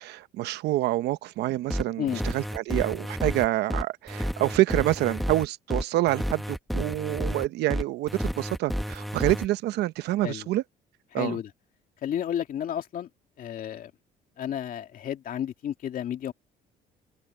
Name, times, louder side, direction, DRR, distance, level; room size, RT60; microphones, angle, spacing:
voice 1, 0.0-10.6 11.1-11.4, right 16 dB, 80° right, 0.9 m, -27 dB
sound 1, 1.7-9.5, equal, ahead, 1.5 m, -31 dB
voice 2, 11.1-11.5 12.0-13.1 13.4-13.9 14.4-16.3, left 10 dB, 55° left, 2.6 m, -32 dB
cardioid pair, 110°, 17 cm